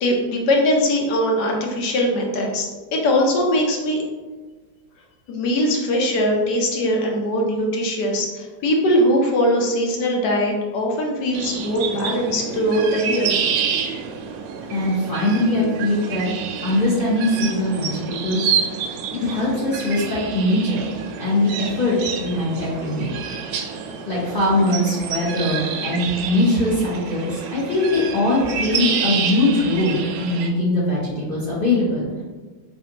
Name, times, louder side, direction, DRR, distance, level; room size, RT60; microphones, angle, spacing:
voice 1, 0.0-4.0 5.3-13.5, equal, 70° left, 0 dB, 1.3 m, -21 dB
sound 1, 11.3-30.5, right 6 dB, 75° right, 1.1 m, -28 dB
voice 2, 14.7-16.3 16.6-18.5 19.1-20.9 21.2-23.2 24.1-32.1, left 1 dB, 45° left, -7 dB, 0.8 m, -21 dB
4.2 x 3.4 x 2.8 m, 1.3 s
omnidirectional pair, 2.0 m